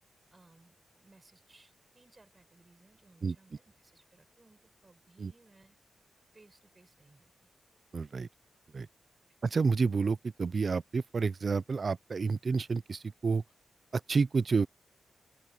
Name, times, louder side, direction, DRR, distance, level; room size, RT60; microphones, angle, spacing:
voice 1, 0.3-5.8 6.3-7.5, right 2 dB, 20° right, 7.6 m, -62 dB
voice 2, 7.9-8.3 8.7-8.9 9.4-13.4 13.9-14.7, right 4 dB, 40° right, 0.5 m, -29 dB
open air
wide cardioid pair, 150°, 0 cm